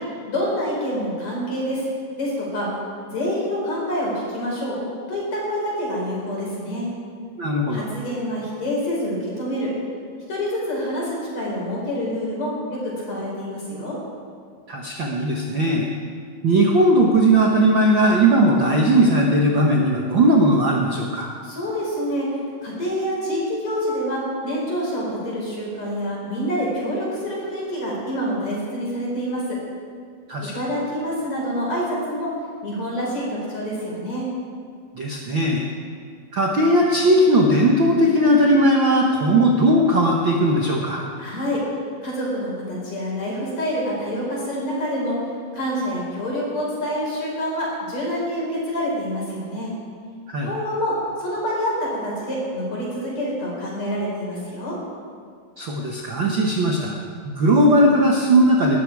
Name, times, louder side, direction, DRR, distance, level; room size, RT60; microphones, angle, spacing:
voice 1, 0.3-1.8 2.1-2.7 3.0-4.8 5.1-6.9 7.7-9.7 10.3-13.9 21.4-29.6 30.5-32.3 32.6-33.2 33.5-34.3 41.2-41.6 42.0-45.2 45.5-49.7 50.4-54.8, equal, 45° left, -4 dB, 6.1 m, -27 dB
voice 2, 7.4-7.9 14.7-15.9 16.4-21.3 30.3-30.6 34.9-35.7 36.3-41.0 50.3-50.5 55.6-57.0 57.2-58.8, right 1 dB, 75° right, -1 dB, 1.1 m, -18 dB
19.5 x 13.0 x 4.8 m, 2.2 s
omnidirectional pair, 4.3 m